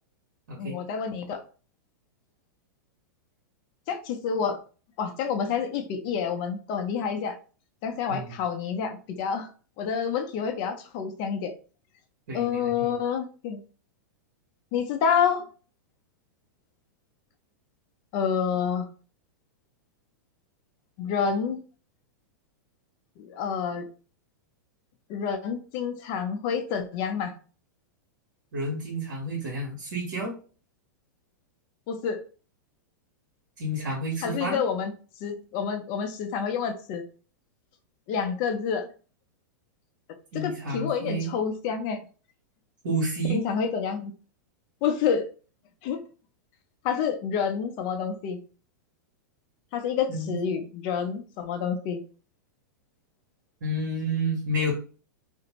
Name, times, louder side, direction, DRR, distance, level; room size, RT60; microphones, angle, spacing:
voice 1, 0.6-1.4 3.9-4.6 5.0-7.4 7.8-9.5 9.8-11.5 12.3-13.6 14.7-15.5 18.1-18.9 21.0-21.6 23.2-23.9 25.1-27.3 31.9-32.2 34.2-34.9 35.2-37.0 38.1-38.9 40.3-42.1 43.3-44.1 44.8-45.3 45.8-46.0 46.8-48.4 49.7-52.0, left 7 dB, 45° left, 0.5 m, -28 dB
voice 2, 12.3-12.9 28.5-30.4 33.6-34.6 40.3-41.3 42.8-43.4 50.1-50.3 53.6-54.7, right 1 dB, 70° right, 1.1 m, -30 dB
2.5 x 2.1 x 2.9 m
hypercardioid pair, 115°, 11 cm